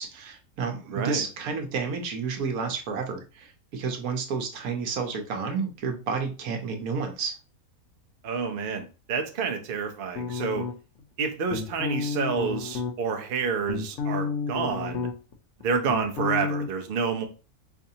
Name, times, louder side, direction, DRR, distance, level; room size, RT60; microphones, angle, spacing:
voice 1, 0.0-7.3, right 5 dB, 80° right, 1.3 m, -31 dB
voice 2, 0.9-1.2 8.2-10.7 11.2-15.1 15.6-17.3, right 5 dB, 50° right, 0.7 m, -29 dB
sound 1, 10.1-11.0 11.5-12.9 13.4-15.3 15.6-16.7, left 5 dB, 65° left, 0.9 m, -31 dB
4.7 x 2.5 x 2.7 m
omnidirectional pair, 1.5 m